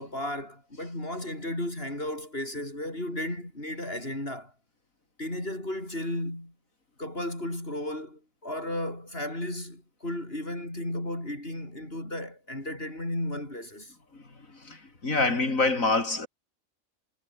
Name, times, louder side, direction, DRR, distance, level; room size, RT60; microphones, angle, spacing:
voice 1, 0.0-4.5 5.2-6.5 7.0-13.9, left 1 dB, 45° left, 8.3 m, -34 dB
voice 2, 14.6-16.3, left 3 dB, 80° left, 4.3 m, -26 dB
omnidirectional pair, 1.4 m